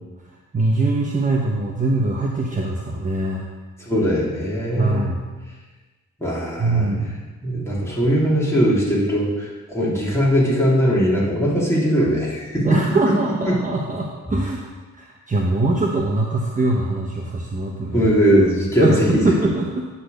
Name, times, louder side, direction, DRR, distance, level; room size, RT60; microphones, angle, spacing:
voice 1, 0.5-3.4 4.7-5.2 6.6-7.1 12.6-14.6 15.0-18.1 18.8-19.0 19.2-19.7, right 2 dB, 25° right, -1 dB, 1.0 m, -22 dB
voice 2, 3.9-5.2 6.2-6.9 7.4-12.7 13.4-13.5 17.9-19.3, equal, 10° left, -7 dB, 3.3 m, -20 dB
10.0 x 4.2 x 6.7 m, 1.3 s
cardioid pair, 90°, 30 cm